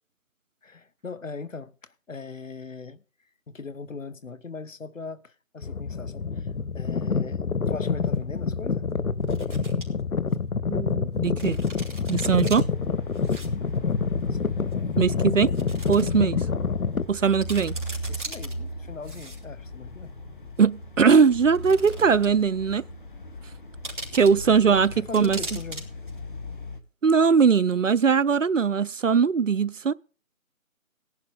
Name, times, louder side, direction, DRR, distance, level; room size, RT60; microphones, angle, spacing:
voice 1, 0.6-3.0 3.5-8.9 14.3-14.6 18.1-20.2 24.7-25.9, left 4 dB, 65° left, 1.1 m, -40 dB
sound 1, 5.6-17.1, left 5 dB, 90° left, 0.9 m, -27 dB
sound 2, 7.7-7.8 9.2-9.8 10.3-10.4 11.4-12.6 13.1-13.5 13.7-13.8 14.7-14.8 15.5-16.1 16.5-16.6 17.0-17.1 17.3-18.5 19.0-19.7 20.6-20.7 21.5-22.4 22.7-22.8 23.8-24.6 25.1-25.8 26.1-26.2, right 2 dB, 35° right, 3.1 m, -39 dB
voice 2, 10.7-11.6 12.1-12.7 15.0-15.5 15.9-16.4 17.1-17.7 20.6-22.8 24.1-25.4 27.0-29.9, right 6 dB, 65° right, 0.5 m, -20 dB
sound 3, 12.5-26.8, left 2 dB, 35° left, 1.4 m, -37 dB
17.5 x 11.0 x 3.6 m
figure-of-eight pair, 165°, 42 cm